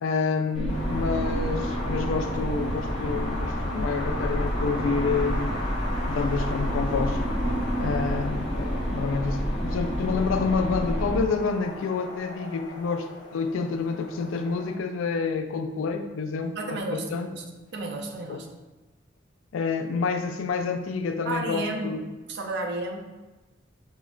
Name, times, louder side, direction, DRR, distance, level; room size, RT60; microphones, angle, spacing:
voice 1, 0.0-5.6 6.1-7.2 7.8-13.1 13.3-17.3 18.3-18.4 19.5-22.0, left 4 dB, 85° left, 6 dB, 0.3 m, -28 dB
sound 1, 0.5-11.2, equal, ahead, 0.5 m, -29 dB
Wind, 0.7-14.7, left 1 dB, 40° left, 0.6 m, -37 dB
voice 2, 16.6-17.4 17.7-18.5 21.3-22.0 22.3-23.0, right 2 dB, 60° right, 3 dB, 0.4 m, -32 dB
4.6 x 2.1 x 2.4 m, 1.2 s
head